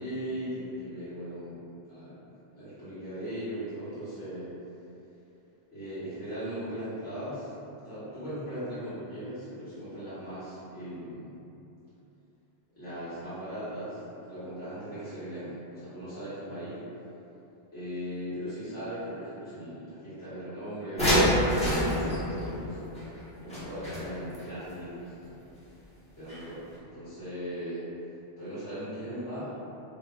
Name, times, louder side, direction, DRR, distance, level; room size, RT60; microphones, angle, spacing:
voice 1, 0.0-1.6 1.8-4.5 5.7-7.5 7.8-11.4 12.7-16.8 17.7-23.0 23.4-25.5 26.2-27.9 28.4-29.5, equal, 70° left, -15 dB, 2.0 m, -38 dB
sound 1, 21.0-24.4 26.3-26.4 26.7-26.8, equal, 5° left, 0.9 m, -27 dB
5.1 x 3.5 x 2.2 m, 2.8 s
omnidirectional pair, 1.2 m